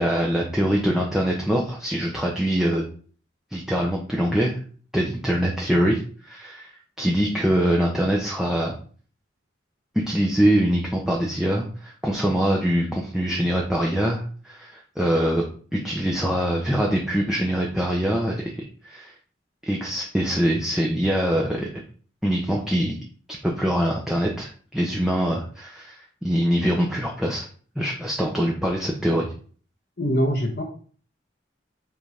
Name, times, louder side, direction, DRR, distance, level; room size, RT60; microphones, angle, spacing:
voice 1, 0.0-2.8 3.5-4.6 4.9-6.7 7.0-8.8 10.1-15.4 15.7-19.1 19.6-21.7 22.2-22.9 23.4-27.5 27.8-29.3, equal, 5° right, -2 dB, 1.0 m, -23 dB
voice 2, 30.0-30.6, equal, 55° left, 0 dB, 1.2 m, -23 dB
7.9 x 3.8 x 5.0 m, 0.42 s
head